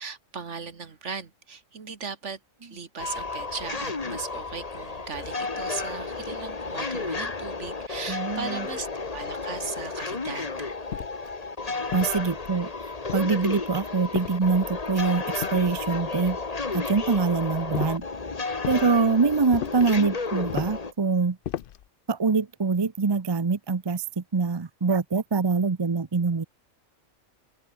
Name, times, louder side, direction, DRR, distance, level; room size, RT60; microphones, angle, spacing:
voice 1, 0.0-10.7, right 5 dB, 65° right, 2.0 m, -38 dB
sound 1, 3.0-20.9, left 3 dB, 30° left, 1.5 m, -32 dB
voice 2, 8.1-8.7 11.9-12.7 13.1-16.4 16.7-18.0 18.7-21.4 22.1-26.4, right 4 dB, 25° right, 0.6 m, -24 dB
sound 2, 10.9-11.3 11.9-12.6 13.1-13.6 14.1-14.8 15.4-16.1 17.7-18.1 18.6-18.9 19.5-19.9 20.5-20.9 21.4-21.9, left 11 dB, 60° left, 0.6 m, -36 dB
open air
omnidirectional pair, 1.4 m